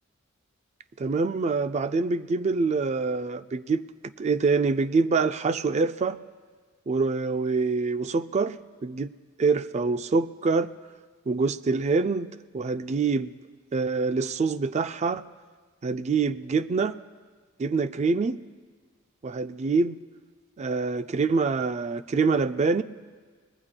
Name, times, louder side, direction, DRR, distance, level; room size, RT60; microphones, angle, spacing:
voice 1, 1.0-6.2 6.9-8.6 8.8-9.1 9.4-10.7 11.3-12.3 12.5-13.3 13.7-15.2 15.8-16.9 17.6-18.4 19.2-20.0 20.6-22.8, right 4 dB, 35° right, 0.4 m, -25 dB
24.0 x 19.5 x 2.2 m
head